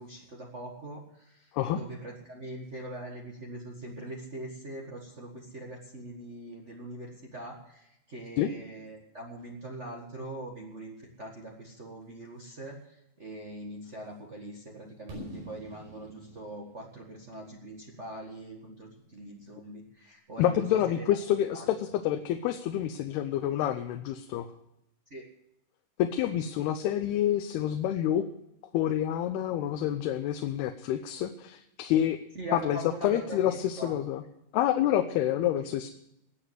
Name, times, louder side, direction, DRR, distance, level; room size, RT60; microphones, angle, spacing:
voice 1, 0.0-21.1 21.5-21.7 25.1-25.3 32.3-34.0, right 1 dB, 60° right, -1 dB, 0.7 m, -42 dB
Fireworks, 15.1-19.0, equal, 90° right, 7.3 m, -48 dB
voice 2, 20.4-24.5 26.0-28.3 28.7-32.2 32.5-34.2 34.5-35.9, left 11 dB, 80° left, 8 dB, 2.7 m, -28 dB
19.5 x 7.3 x 8.1 m, 0.83 s
omnidirectional pair, 4.6 m